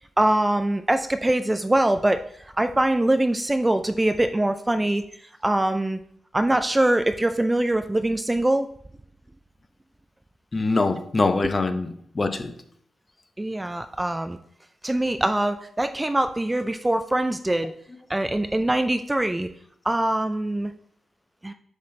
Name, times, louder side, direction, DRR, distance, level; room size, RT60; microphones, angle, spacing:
voice 1, 0.2-5.0 5.4-6.0 6.3-8.7 13.4-14.4 14.8-17.7 18.1-19.5 19.9-20.7 21.4-21.5, right 1 dB, 15° right, 9 dB, 0.4 m, -23 dB
voice 2, 10.5-12.6, left 3 dB, 30° left, 8 dB, 0.7 m, -24 dB
8.1 x 5.8 x 3.2 m, 0.68 s
cardioid pair, 90°, 0 cm